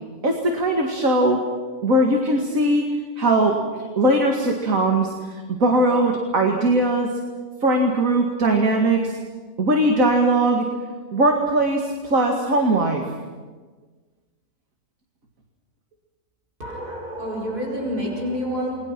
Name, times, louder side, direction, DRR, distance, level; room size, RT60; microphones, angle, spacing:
voice 1, 0.2-1.4 1.8-2.9 3.2-7.1 7.6-9.2 9.6-10.7 11.1-13.0, right 1 dB, 60° right, 1 dB, 2.5 m, -20 dB
voice 2, 16.6-18.8, equal, 90° right, -3 dB, 5.6 m, -28 dB
29.5 x 21.5 x 6.1 m, 1.4 s
omnidirectional pair, 1.6 m